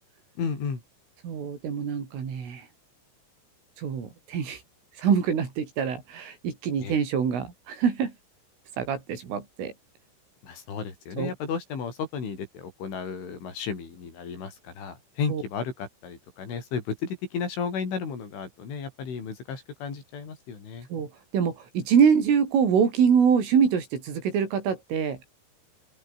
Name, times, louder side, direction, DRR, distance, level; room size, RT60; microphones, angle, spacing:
voice 1, 0.4-0.8 6.8-7.0 10.4-20.9, left 6 dB, 75° left, 9.0 m, -33 dB
voice 2, 1.2-2.7 3.8-4.6 5.0-8.1 8.8-9.7 11.2-11.3 15.3-15.4 20.9-25.2, right 7 dB, 85° right, 7.5 m, -25 dB
open air
omnidirectional pair, 5.6 m